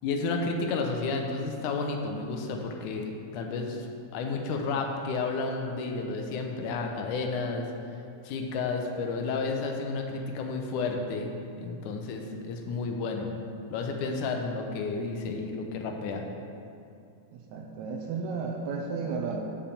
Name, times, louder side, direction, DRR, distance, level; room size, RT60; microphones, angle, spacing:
voice 1, 0.0-7.7 8.2-13.3 13.7-16.2, left 4 dB, 80° left, 3 dB, 2.2 m, -31 dB
voice 2, 17.5-19.4, right 5 dB, 75° right, 1 dB, 1.8 m, -33 dB
6.8 x 5.6 x 7.0 m, 2.5 s
omnidirectional pair, 3.6 m